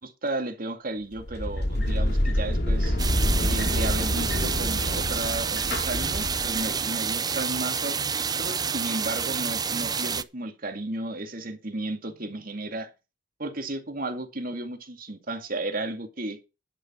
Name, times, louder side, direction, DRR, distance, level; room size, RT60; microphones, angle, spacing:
voice 1, 0.0-3.0 3.4-8.0 8.4-12.9 13.4-16.4, right 2 dB, 50° right, 2.3 m, -33 dB
sound 1, 1.2-6.8, left 1 dB, 65° left, 2.6 m, -27 dB
sound 2, 3.0-10.2, right 6 dB, 20° right, 0.5 m, -29 dB
10.5 x 7.2 x 6.2 m
head